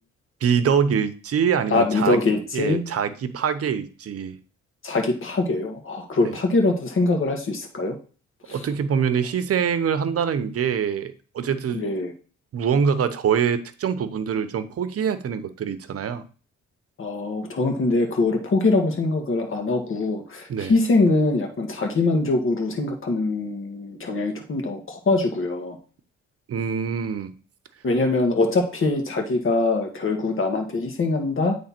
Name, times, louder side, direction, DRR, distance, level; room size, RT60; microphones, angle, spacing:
voice 1, 0.4-2.2 2.5-4.4 8.5-11.8 12.5-16.2 20.5-20.7 26.5-27.3, right 7 dB, 50° right, 12 dB, 0.9 m, -24 dB
voice 2, 1.7-2.8 4.8-8.0 8.5-8.7 11.7-12.1 17.0-25.8 27.8-31.6, left 3 dB, 45° left, 3 dB, 1.9 m, -23 dB
8.8 x 3.4 x 4.4 m, 0.38 s
cardioid pair, 90°, 30 cm